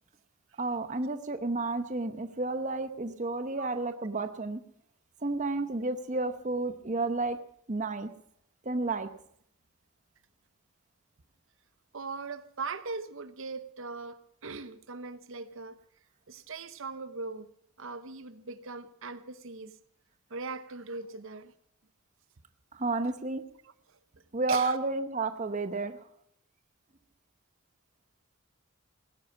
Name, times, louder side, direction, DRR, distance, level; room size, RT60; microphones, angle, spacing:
voice 1, 0.6-4.6 5.2-7.4 7.7-8.1 8.6-9.1 22.7-23.4 24.3-26.0, right 3 dB, 35° right, 9 dB, 0.8 m, -31 dB
voice 2, 11.9-15.8 16.3-17.5 17.8-19.8 20.3-21.5 23.6-24.0 24.5-24.8, right 4 dB, 60° right, 13 dB, 0.9 m, -40 dB
17.5 x 10.5 x 7.3 m, 0.68 s
head